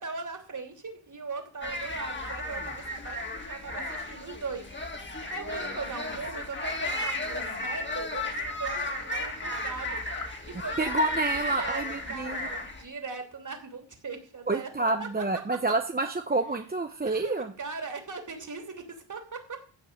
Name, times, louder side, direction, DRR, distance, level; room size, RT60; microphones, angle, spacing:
voice 1, 0.0-4.7 5.3-10.0 10.5-10.8 11.3-15.2 15.7-15.8 17.0-19.6, right 4 dB, 40° right, 5 dB, 3.0 m, -39 dB
sound 1, 1.6-12.8, left 1 dB, 25° left, 2.2 m, -34 dB
sound 2, 6.9-7.3 10.0-10.4, left 4 dB, 45° left, 3.5 m, -44 dB
voice 2, 10.8-12.5 14.5-17.5, right 2 dB, 20° right, 6 dB, 0.8 m, -28 dB
15.0 x 5.4 x 8.7 m, 0.41 s
wide cardioid pair, 135°, 46 cm